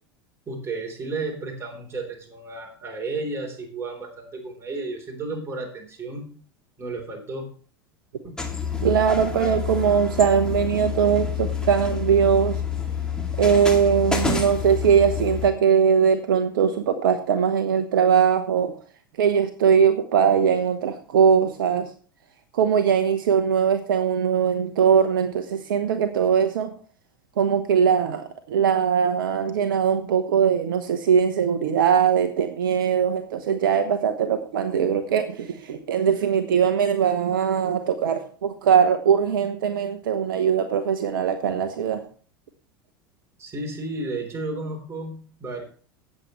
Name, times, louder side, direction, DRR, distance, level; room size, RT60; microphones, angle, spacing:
voice 1, 0.5-6.3 6.8-7.5 8.2-8.3 43.4-45.6, right 3 dB, 20° right, 1 dB, 3.6 m, -33 dB
sound 1, 8.4-15.5, left 6 dB, 5° left, 2.4 m, -28 dB
voice 2, 8.8-12.6 13.4-18.7 19.2-21.9 22.5-26.7 27.4-42.0, right 7 dB, 65° right, 8 dB, 1.0 m, -21 dB
17.0 x 7.6 x 3.1 m, 0.42 s
figure-of-eight pair, 80°, 12 cm